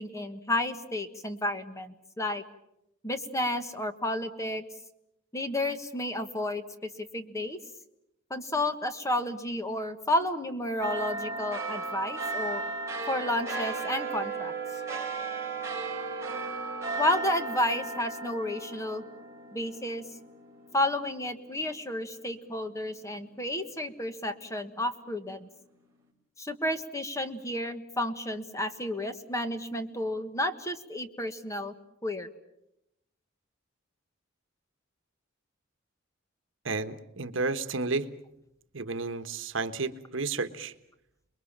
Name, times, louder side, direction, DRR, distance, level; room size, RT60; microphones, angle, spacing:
voice 1, 0.0-2.4 3.0-4.6 5.3-6.6 7.1-7.6 8.3-12.6 13.1-14.5 17.0-19.0 19.5-20.0 20.7-25.5 26.4-31.7 32.0-32.3, left 1 dB, 15° left, 9 dB, 1.4 m, -31 dB
sound 1, 10.8-21.6 22.0-22.1, right 3 dB, 15° right, 5.0 m, -35 dB
voice 2, 36.6-38.1 38.7-40.7, right 3 dB, 70° right, 10 dB, 1.3 m, -32 dB
29.5 x 21.5 x 7.4 m, 0.82 s
head